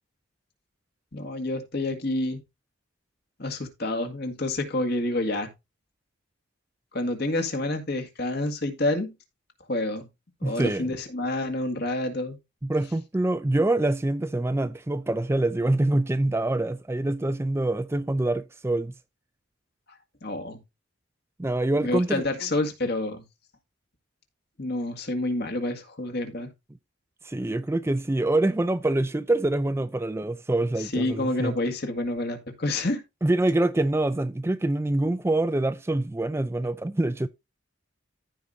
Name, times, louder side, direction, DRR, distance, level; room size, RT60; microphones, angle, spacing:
voice 1, 1.1-2.4 3.4-5.5 6.9-9.1 9.7-10.1 10.4-12.4 20.2-20.6 21.8-23.2 24.6-26.5 30.8-33.0, left 2 dB, 50° left, 2.0 m, -28 dB
voice 2, 10.4-10.9 12.6-18.9 21.4-22.2 27.2-31.5 33.2-37.3, right 2 dB, 10° right, 0.4 m, -25 dB
14.5 x 5.0 x 2.7 m
head